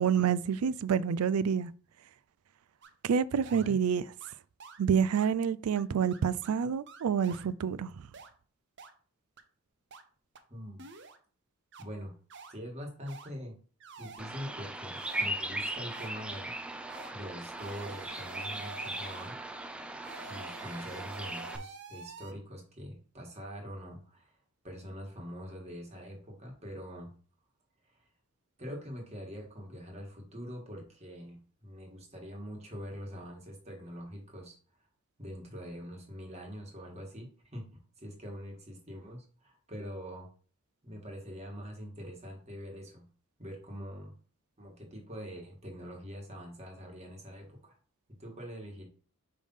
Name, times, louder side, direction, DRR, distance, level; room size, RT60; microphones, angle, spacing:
voice 1, 0.0-1.7 3.0-4.0 4.8-7.9, right 7 dB, 85° right, 0.4 m, -28 dB
sound 1, 2.8-2.9 3.5-3.7 4.2-4.3 4.6-4.8 5.1-5.3 5.8-5.9 6.1-6.5 6.9-7.5 8.1-8.3 8.8-8.9 9.4-9.5 9.9-10.0 10.4-10.5 10.8-11.2 11.7-11.8 12.3-12.5 13.1-13.3 13.8-14.3 14.9-15.3 15.9-16.1 16.9-17.1 17.6-19.4 20.0-22.3, right 5 dB, 55° right, 0.7 m, -48 dB
voice 2, 10.5-10.8 11.8-12.1 12.5-13.5 14.0-16.5 17.1-19.3 20.3-24.4 24.6-27.1 27.9-28.1 28.6-34.6 35.2-37.6 38.0-40.3 40.8-43.0 43.4-44.1 44.6-47.8 48.2-48.8, equal, 30° right, 1.8 m, -44 dB
Bird vocalization bird call bird song, 14.2-21.6, right 1 dB, 5° right, 0.4 m, -38 dB
5.2 x 3.4 x 5.5 m
head